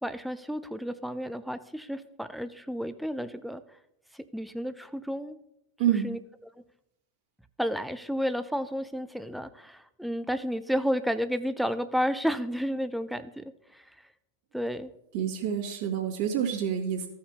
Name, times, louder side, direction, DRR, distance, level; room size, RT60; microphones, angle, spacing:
voice 1, 0.0-3.6 4.1-5.4 6.0-6.2 7.6-13.8 14.5-14.9, equal, ahead, 12 dB, 0.6 m, -31 dB
voice 2, 5.8-6.1 15.1-17.1, right 8 dB, 50° right, -1 dB, 2.2 m, -28 dB
15.5 x 5.8 x 3.0 m, 0.81 s
figure-of-eight pair, 90°, 0 cm